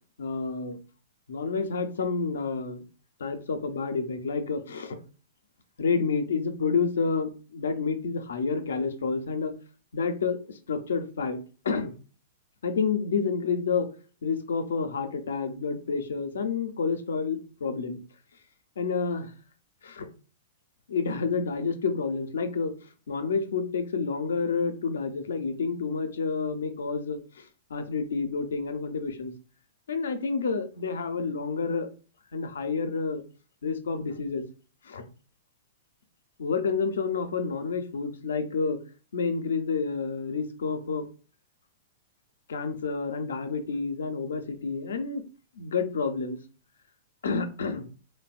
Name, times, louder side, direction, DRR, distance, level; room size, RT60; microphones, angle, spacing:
voice 1, 0.2-0.8 1.3-2.8 3.2-5.0 5.8-9.5 9.9-10.4 10.7-11.4 11.6-11.9 12.6-13.9 14.2-18.0 18.8-19.3 19.8-20.1 20.9-22.7 23.1-27.4 27.7-29.3 29.9-31.9 32.3-33.2 33.6-34.4 34.8-35.0 36.4-38.8 39.1-41.1 42.5-45.2 45.6-46.4 47.2-47.9, left 5 dB, 80° left, 9 dB, 0.4 m, -29 dB
3.2 x 2.1 x 2.4 m, 0.37 s
hypercardioid pair, 125°, 0 cm